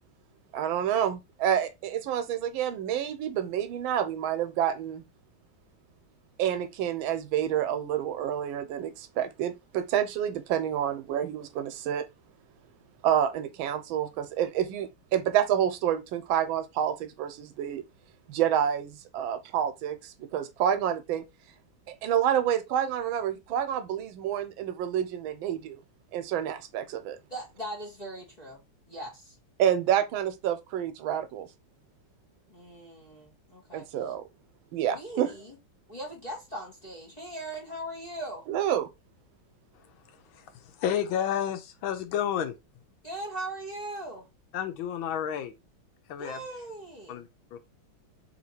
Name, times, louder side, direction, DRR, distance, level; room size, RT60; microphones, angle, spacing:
voice 1, 0.5-5.0 6.4-12.1 13.0-17.8 18.3-21.2 22.0-25.8 26.1-27.2 29.6-31.5 33.7-34.2 34.7-35.3 38.5-38.9, right 10 dB, 85° right, 1.4 m, -28 dB
voice 2, 27.3-29.3 32.5-33.9 34.9-35.6 35.9-38.5 43.0-44.3 46.2-47.2, right 1 dB, 30° left, 0.8 m, -39 dB
voice 3, 40.8-42.5 44.5-45.5 46.1-46.4 47.1-47.6, left 9 dB, 90° left, 1.5 m, -30 dB
3.4 x 2.8 x 4.1 m
omnidirectional pair, 2.2 m